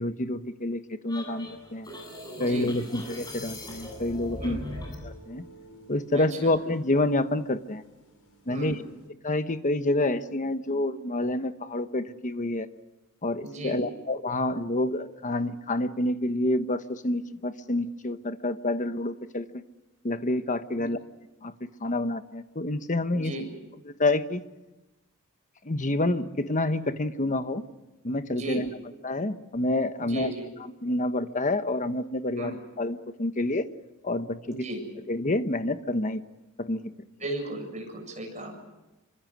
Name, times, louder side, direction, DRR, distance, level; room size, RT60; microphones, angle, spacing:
voice 1, 0.0-1.9 2.4-4.6 5.0-5.4 5.9-7.8 8.5-8.8 9.2-12.7 13.2-19.6 20.0-21.0 21.4-21.5 21.8-23.3 23.9-24.4 25.6-27.6 28.0-28.7 29.0-30.3 30.8-33.7 34.0-34.7 35.1-36.2 36.6-36.9, left 2 dB, 35° left, 10 dB, 1.2 m, -28 dB
sound 1, 1.1-5.1, left 1 dB, 20° left, 7.9 m, -40 dB
sound 2, 1.3-9.1, equal, 70° left, 5.5 m, -51 dB
voice 2, 2.4-2.7 4.4-4.6 6.1-6.5 8.5-8.8 13.4-13.8 20.8-20.9 23.1-23.5 28.3-28.6 30.0-30.5 32.3-32.6 34.5-34.8 37.2-38.5, right 2 dB, 35° right, 3 dB, 7.5 m, -35 dB
27.5 x 25.0 x 6.3 m, 1.1 s
head